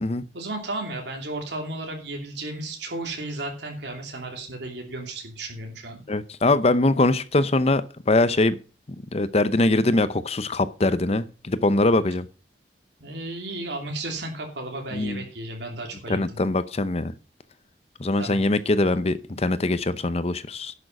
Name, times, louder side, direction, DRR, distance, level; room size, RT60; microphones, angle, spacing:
voice 1, 0.3-6.0 13.0-16.2 18.2-18.4, right 2 dB, 75° right, 2 dB, 2.9 m, -34 dB
voice 2, 6.1-8.6 9.1-12.3 14.9-15.2 16.1-17.1 18.0-20.7, left 2 dB, 35° left, 14 dB, 0.7 m, -22 dB
11.0 x 6.5 x 5.9 m, 0.35 s
head